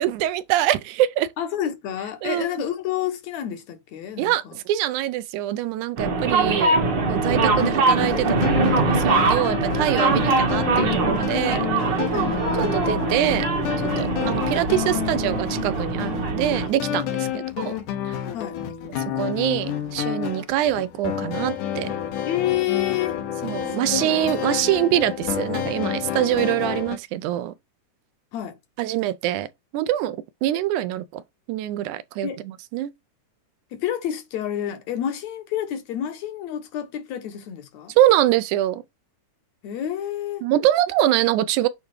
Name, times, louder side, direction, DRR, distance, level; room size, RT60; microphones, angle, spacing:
voice 1, 0.0-1.3 2.2-2.5 4.2-6.8 7.1-8.4 8.6-11.7 12.6-13.5 13.7-17.7 18.1-18.2 19.2-21.9 23.4-27.5 28.8-29.5 29.7-31.2 31.5-32.3 32.7-32.9 38.0-38.8 40.4-41.7, right 13 dB, 80° right, 2.1 m, -24 dB
voice 2, 1.4-4.6 12.1-12.7 14.2-14.4 17.3-17.4 18.3-18.6 22.2-23.2 23.7-24.2 28.3-28.6 32.2-32.4 33.7-37.9 39.6-40.5, left 11 dB, 70° left, 2.0 m, -29 dB
sound 1, 6.0-16.7, right 3 dB, 55° right, 1.3 m, -22 dB
sound 2, 7.3-27.0, left 10 dB, 90° left, 2.6 m, -29 dB
8.7 x 3.4 x 3.2 m
omnidirectional pair, 3.5 m